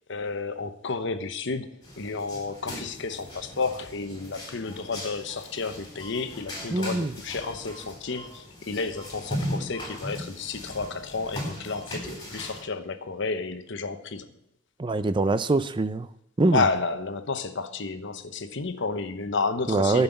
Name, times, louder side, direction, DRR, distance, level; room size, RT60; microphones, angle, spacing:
voice 1, 0.1-1.7 2.0-14.3 16.5-20.0, left 4 dB, 65° left, 9 dB, 0.9 m, -31 dB
sound 1, 1.8-12.6, equal, 20° left, 3.6 m, -38 dB
voice 2, 6.7-7.1 14.8-16.1 16.4-16.7 19.7-20.0, right 2 dB, 25° right, 13 dB, 0.5 m, -23 dB
11.0 x 5.7 x 7.9 m, 0.75 s
head